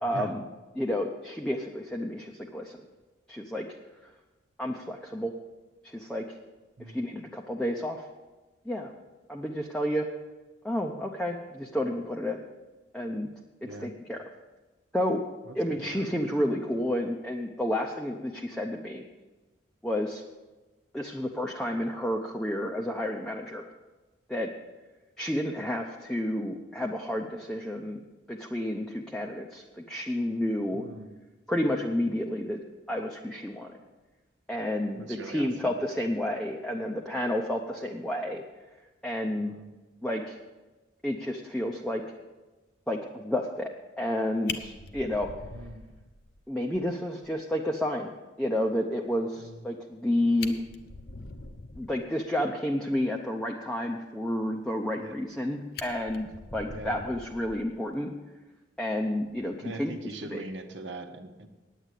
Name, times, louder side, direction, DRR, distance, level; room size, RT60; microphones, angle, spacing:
voice 1, 0.0-0.4 0.7-2.8 3.3-3.7 4.6-5.3 5.9-6.2 6.9-8.0 8.7-8.9 9.3-10.1 10.6-12.4 12.9-13.3 13.6-14.3 14.9-15.2 15.5-19.0 19.8-20.2 20.9-23.6 24.3-24.5 25.2-28.0 28.3-30.8 31.5-32.6 32.9-33.7 34.5-38.4 39.0-39.5 40.0-40.4 41.0-42.0 42.9-43.7 44.0-45.3 46.5-48.1 48.4-50.6 51.8-58.1 58.8-60.4, left 1 dB, 5° left, 0 dB, 0.6 m, -30 dB
voice 2, 15.4-16.1 30.7-31.1 34.9-35.7 39.4-39.7 45.5-45.8 49.4-49.6 55.0-55.2 56.7-57.0 59.6-61.5, right 2 dB, 75° right, 6 dB, 1.1 m, -41 dB
Fire, 44.0-44.1 44.5-46.4 46.7-46.8 47.2-47.3 47.7-47.8 49.9-50.0 50.3-52.0 54.9-55.4 55.7-57.9 59.2-59.5, left 5 dB, 55° left, 0.8 m, -42 dB
9.2 x 9.1 x 8.3 m, 1.2 s
head